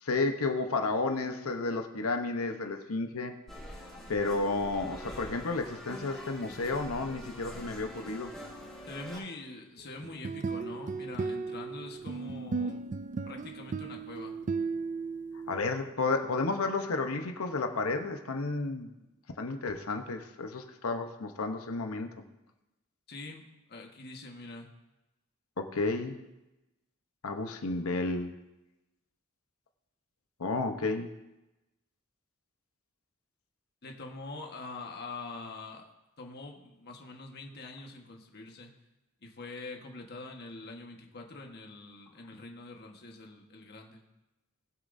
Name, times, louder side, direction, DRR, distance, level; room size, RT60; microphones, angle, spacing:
voice 1, 0.0-3.3 4.1-8.3 15.5-18.9 19.4-22.1 25.6-26.2 27.2-28.4 30.4-31.1, left 3 dB, 90° left, 5 dB, 1.0 m, -32 dB
sound 1, 3.5-9.2, equal, ahead, 2.6 m, -45 dB
voice 2, 8.9-12.8 13.3-14.3 23.1-24.7 33.8-35.8 36.2-38.7 39.2-44.0, left 2 dB, 50° left, 2 dB, 1.5 m, -44 dB
sound 2, 10.0-15.6, right 4 dB, 35° right, 0.4 m, -35 dB
19.5 x 7.5 x 2.7 m, 0.99 s
head